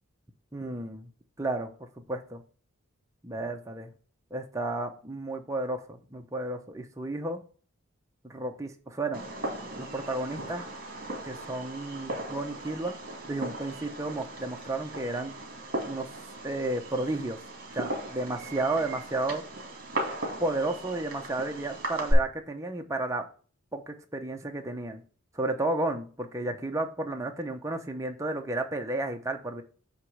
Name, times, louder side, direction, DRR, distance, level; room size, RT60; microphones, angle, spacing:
voice 1, 0.5-1.1 1.4-1.7 2.1-2.4 3.2-3.9 4.3-7.4 8.2-9.2 9.8-10.7 11.2-13.0 13.3-15.3 15.9-16.1 16.4-17.4 17.7-19.4 20.4-23.3 23.7-25.0 25.3-29.6, right 2 dB, 15° right, 3 dB, 0.7 m, -32 dB
Fireworks, 9.1-22.1, right 1 dB, 40° right, 2.2 m, -37 dB
8.0 x 3.1 x 6.0 m, 0.41 s
head